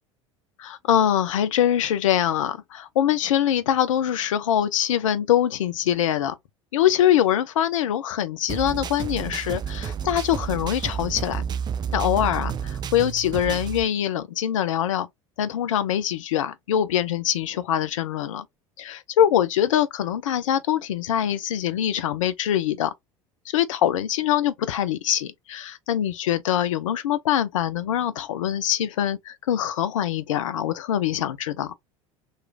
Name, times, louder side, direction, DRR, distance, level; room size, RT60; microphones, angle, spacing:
voice 1, 0.6-6.4 6.7-11.4 11.9-15.1 15.4-18.4 18.8-22.9 23.5-31.7, left 10 dB, 75° left, 0.5 m, -23 dB
sound 1, 8.5-13.8, right 7 dB, 25° right, 0.4 m, -30 dB
3.0 x 2.3 x 3.3 m
figure-of-eight pair, 75°, 17 cm